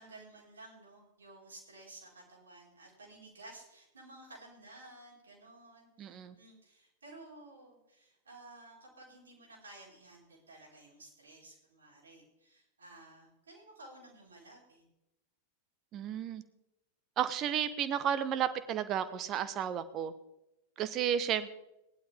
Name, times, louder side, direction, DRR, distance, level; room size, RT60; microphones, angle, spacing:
voice 1, 0.0-14.8, right 2 dB, 70° right, -2 dB, 4.6 m, -54 dB
voice 2, 6.0-6.4 15.9-16.4 17.2-20.1 20.8-21.5, right 9 dB, 35° right, 13 dB, 1.0 m, -32 dB
18.5 x 11.5 x 3.5 m, 0.87 s
figure-of-eight pair, 90°, 0 cm